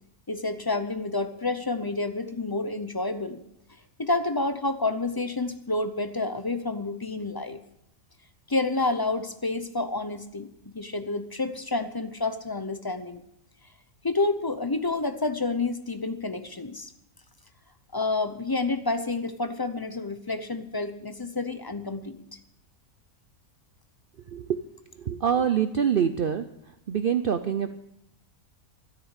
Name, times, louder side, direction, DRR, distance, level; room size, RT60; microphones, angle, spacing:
voice 1, 0.3-3.4 4.0-7.6 8.5-13.2 14.0-16.9 17.9-22.2, left 3 dB, 30° left, 10 dB, 0.4 m, -29 dB
voice 2, 24.3-24.6 25.0-26.4 26.9-27.7, right 8 dB, 55° right, 10 dB, 0.6 m, -25 dB
12.5 x 10.0 x 8.1 m, 0.80 s
omnidirectional pair, 1.5 m